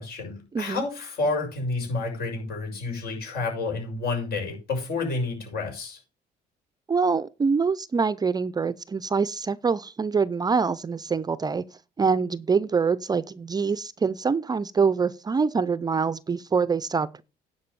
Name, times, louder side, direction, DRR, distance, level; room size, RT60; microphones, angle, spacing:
voice 1, 0.0-6.0, left 3 dB, 65° left, 6.5 m, -30 dB
voice 2, 0.5-0.8 6.9-11.6 12.0-17.2, right 5 dB, 25° right, 0.5 m, -25 dB
10.0 x 5.4 x 6.8 m
cardioid pair, 110°, 17 cm